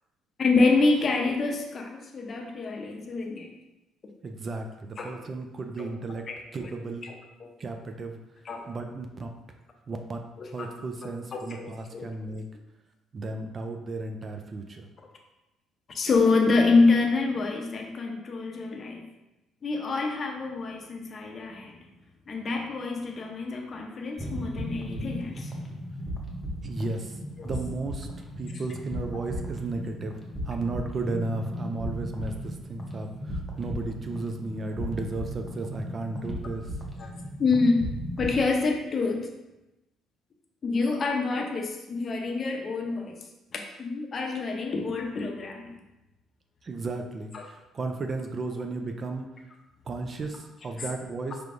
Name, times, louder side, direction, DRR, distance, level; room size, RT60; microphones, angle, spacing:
voice 1, 0.4-3.5 5.0-5.2 5.8-5.9 6.3-6.7 7.0-7.1 7.4-7.5 8.4-8.6 10.4-10.7 11.0-12.1 15.9-19.0 19.6-21.7 22.3-25.6 27.4-27.5 37.0-37.1 37.4-37.8 38.2-39.3 40.6-43.2 43.5-45.7 47.3-47.5, left 3 dB, 40° left, 2 dB, 0.6 m, -27 dB
voice 2, 4.2-6.3 6.5-7.1 7.6-8.2 8.7-9.3 9.9-10.2 10.5-12.5 13.1-14.9 26.6-27.2 27.4-28.1 28.4-30.2 30.5-36.7 46.6-49.3 49.9-51.4, right 3 dB, 35° right, 5 dB, 0.4 m, -34 dB
sound 1, 24.2-38.4, equal, 5° left, 0.8 m, -36 dB
4.5 x 3.3 x 2.5 m, 0.97 s
cardioid pair, 105°, 0 cm